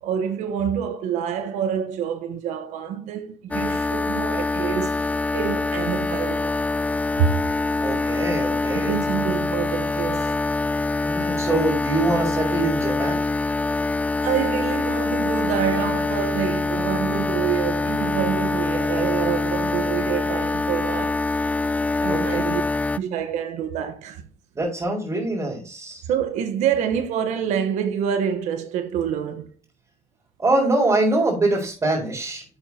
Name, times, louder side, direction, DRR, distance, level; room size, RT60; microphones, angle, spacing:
voice 1, 0.0-5.0 5.3-6.5 7.2-7.3 8.8-10.4 14.2-21.2 22.0-22.6 23.0-24.3 26.1-29.5, right 8 dB, 80° right, 1.0 m, -26 dB
sound 1, 3.5-23.0, left 3 dB, 10° left, 0.4 m, -24 dB
voice 2, 7.8-9.0 11.0-13.2 22.1-22.5 24.5-26.1 30.4-32.4, right 2 dB, 25° right, 4.2 m, -24 dB
10.5 x 8.0 x 2.8 m
cardioid pair, 115°, 12 cm